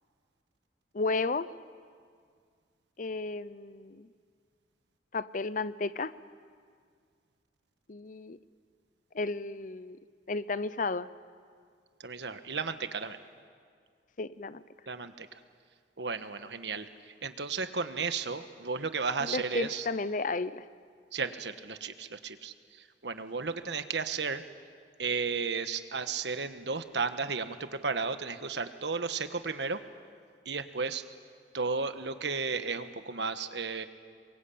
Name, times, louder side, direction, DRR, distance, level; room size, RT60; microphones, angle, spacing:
voice 1, 0.9-1.5 3.0-4.1 5.1-6.1 7.9-8.4 9.1-10.0 10.3-11.1 14.2-14.6 19.2-20.6, left 3 dB, 45° left, 16 dB, 0.7 m, -33 dB
voice 2, 12.0-13.2 14.9-15.3 16.0-19.9 21.1-24.4 25.0-29.8 30.4-31.0 31.5-33.9, right 4 dB, 80° right, 9 dB, 1.4 m, -34 dB
27.5 x 23.5 x 8.6 m, 2.1 s
head